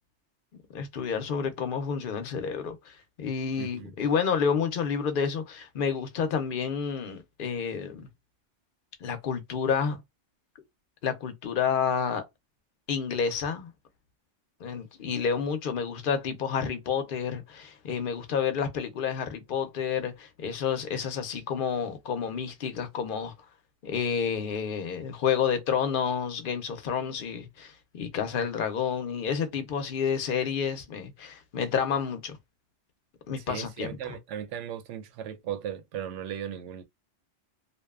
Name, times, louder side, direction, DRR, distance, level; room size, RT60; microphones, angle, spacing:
voice 1, 0.7-8.1 9.0-10.0 11.0-12.2 12.9-13.7 14.6-23.3 23.8-32.4 33.3-34.2, left 6 dB, 55° left, 0.6 m, -30 dB
voice 2, 3.6-3.9 33.5-36.8, right 9 dB, 80° right, 0.9 m, -37 dB
2.6 x 2.2 x 2.3 m
omnidirectional pair, 1.2 m